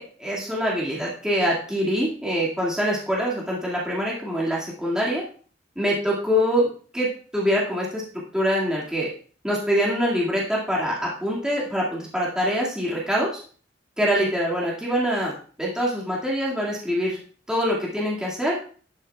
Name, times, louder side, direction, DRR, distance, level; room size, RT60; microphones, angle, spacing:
voice 1, 0.0-5.2 5.8-7.1 7.3-8.0 8.3-9.1 9.4-13.3 14.0-15.3 15.6-17.2 17.5-18.6, equal, 5° right, -6 dB, 2.2 m, -24 dB
11.5 x 8.9 x 2.4 m, 0.42 s
head